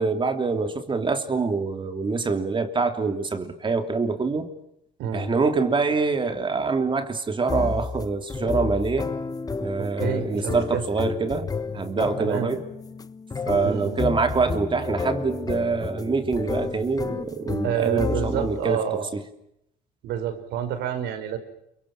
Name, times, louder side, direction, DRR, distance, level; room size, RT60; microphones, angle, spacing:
voice 1, 0.0-4.5 5.1-9.1 9.6-12.6 13.5-18.8 19.1-19.2, right 4 dB, 30° right, 3.1 m, -25 dB
voice 2, 5.0-5.3 9.8-10.8 12.2-12.5 13.6-14.0 17.6-19.1 20.0-21.4, right 9 dB, 85° right, 5.1 m, -28 dB
sound 1, 7.5-18.6, left 4 dB, 20° left, 1.1 m, -31 dB
29.5 x 24.0 x 7.6 m
cardioid pair, 110°, 17 cm